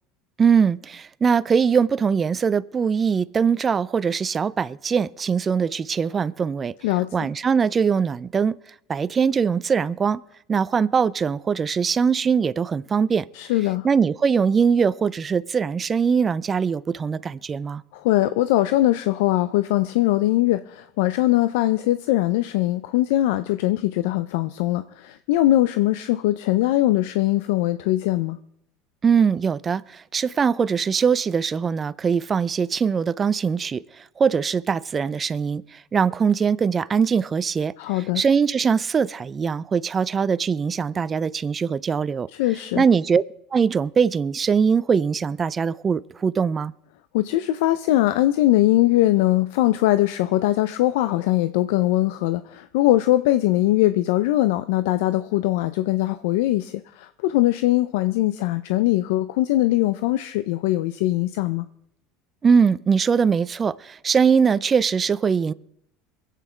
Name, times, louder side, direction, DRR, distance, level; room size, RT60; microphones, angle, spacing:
voice 1, 0.4-6.7 7.1-8.6 8.9-10.2 10.5-13.3 13.8-17.8 29.0-37.7 38.2-42.3 42.8-43.2 43.5-46.7 62.4-65.5, right 6 dB, 25° right, 0.4 m, -21 dB
voice 2, 6.8-7.3 13.3-13.9 17.9-28.4 37.8-38.2 42.4-42.8 47.1-61.7, left 15 dB, 80° left, 0.5 m, -21 dB
22.5 x 8.4 x 4.4 m
supercardioid pair, 120°, 0 cm